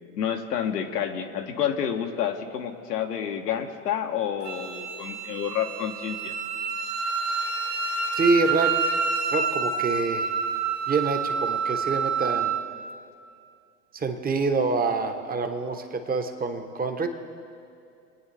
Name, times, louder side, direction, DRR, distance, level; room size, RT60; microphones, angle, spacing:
voice 1, 0.2-6.3, left 9 dB, 80° left, 3 dB, 1.3 m, -29 dB
Wind instrument woodwind instrument, 4.4-12.6, right 5 dB, 35° right, 1.7 m, -28 dB
voice 2, 8.1-8.7 9.3-10.3 10.9-12.5 13.9-17.1, right 4 dB, 20° right, 7 dB, 1.2 m, -26 dB
23.5 x 9.0 x 3.4 m, 2.5 s
hypercardioid pair, 95°, 47 cm